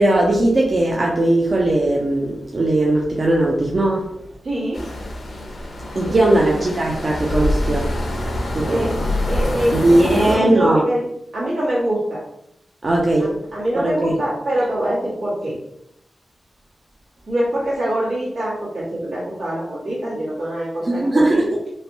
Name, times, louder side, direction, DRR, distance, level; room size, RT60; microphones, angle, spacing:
voice 1, 0.0-4.1 6.0-7.9 8.5-8.9 9.7-10.8 12.8-13.3 13.7-14.2 20.8-21.5, right 1 dB, 50° right, -2 dB, 0.5 m, -18 dB
voice 2, 4.4-4.8 6.0-6.3 8.6-8.9 9.3-11.0 11.3-12.2 13.2-15.5 17.3-21.4, right 1 dB, 85° right, -7 dB, 1.4 m, -24 dB
sound 1, 4.7-10.4, left 1 dB, 70° left, 0.6 m, -25 dB
3.1 x 2.1 x 2.7 m, 0.79 s
cardioid pair, 50°, 0 cm